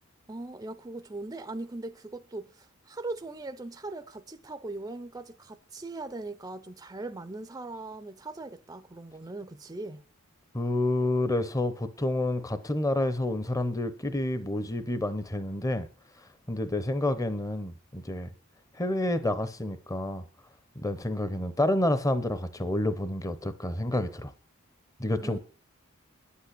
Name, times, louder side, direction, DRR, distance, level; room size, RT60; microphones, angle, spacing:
voice 1, 0.3-10.0 25.2-25.4, right 2 dB, 15° right, 0.5 m, -40 dB
voice 2, 10.5-15.9 16.5-18.3 18.7-20.2 20.8-24.3 25.0-25.4, left 1 dB, 15° left, 0.8 m, -29 dB
10.5 x 8.4 x 8.2 m
head